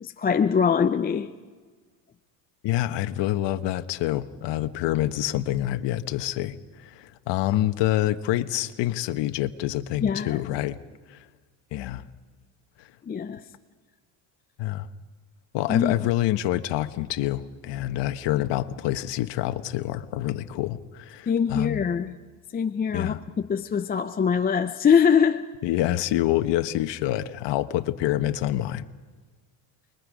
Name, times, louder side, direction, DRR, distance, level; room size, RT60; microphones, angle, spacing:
voice 1, 0.0-1.3 10.0-10.5 13.1-13.4 15.7-16.0 21.3-22.2 22.5-25.4, left 7 dB, 20° left, 0.5 m, -23 dB
voice 2, 2.6-10.8 11.1-11.2 11.7-12.1 12.8-12.9 14.6-14.9 15.5-21.8 22.9-23.2 25.6-28.9, left 14 dB, 60° left, 1.2 m, -27 dB
29.0 x 22.0 x 5.1 m
cardioid pair, 120°, 49 cm